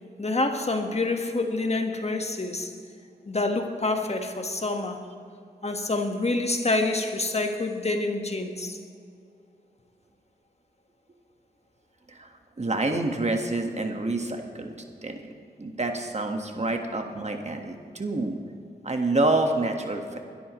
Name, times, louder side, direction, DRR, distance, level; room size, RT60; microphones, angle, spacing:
voice 1, 0.2-2.7 3.3-5.0 5.6-8.8, left 2 dB, 35° left, 4 dB, 1.6 m, -27 dB
voice 2, 12.6-14.7 15.0-15.2 15.6-18.3 18.8-20.2, right 2 dB, 40° right, 4 dB, 1.6 m, -27 dB
21.0 x 13.0 x 3.2 m, 2.4 s
cardioid pair, 50°, 18 cm